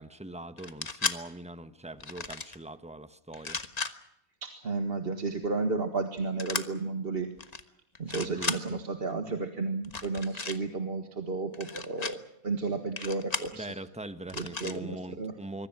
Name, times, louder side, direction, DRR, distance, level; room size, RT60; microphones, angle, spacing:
voice 1, 0.0-3.6 8.1-8.8 13.5-15.7, right 1 dB, 5° right, 11 dB, 1.1 m, -42 dB
sound 1, 0.6-1.2 2.0-2.6 3.3-3.9 6.4-6.6 7.4-7.6 7.9-8.6 9.8-10.6 11.5-12.1 13.0-13.5 14.3-14.8, left 3 dB, 30° left, 1.4 m, -34 dB
voice 2, 4.4-7.3 8.0-12.2 12.4-13.7 14.3-15.3, right 3 dB, 40° right, 6 dB, 1.9 m, -32 dB
25.0 x 24.0 x 6.1 m, 0.79 s
omnidirectional pair, 1.5 m